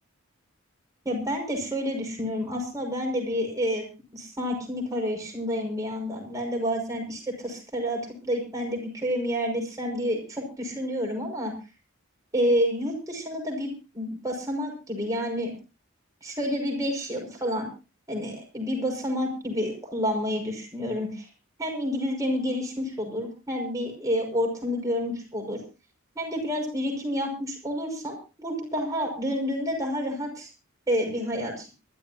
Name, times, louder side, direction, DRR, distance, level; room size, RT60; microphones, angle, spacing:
voice 1, 1.0-3.8 4.1-11.5 12.3-13.7 14.0-15.5 16.2-17.7 18.1-21.3 21.6-25.6 26.2-30.5 30.9-31.7, equal, 15° right, 0 dB, 5.8 m, -29 dB
24.5 x 12.5 x 2.8 m, 0.31 s
head